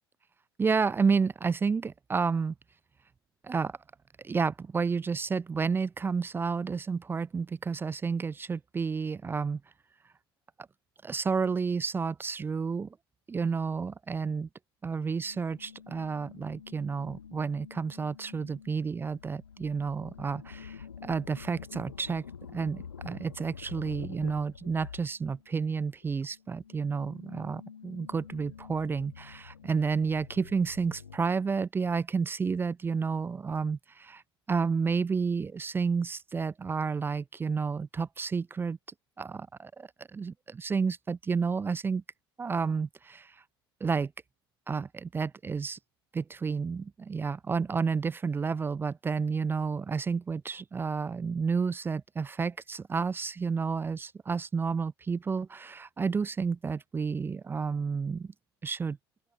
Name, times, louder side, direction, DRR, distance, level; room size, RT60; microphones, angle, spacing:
voice 1, 0.6-2.5 3.4-3.8 4.2-9.6 11.0-13.0 13.3-14.5 14.8-22.2 22.5-34.2 34.5-38.8 39.2-42.0 42.4-43.4 43.8-44.1 44.7-45.8 46.1-58.3 58.6-59.0, right 5 dB, 15° right, 0.5 m, -31 dB
sound 1, 15.0-25.7 26.0-31.2, left 7 dB, 80° left, 1.2 m, -48 dB
open air
figure-of-eight pair, 70°, 13 cm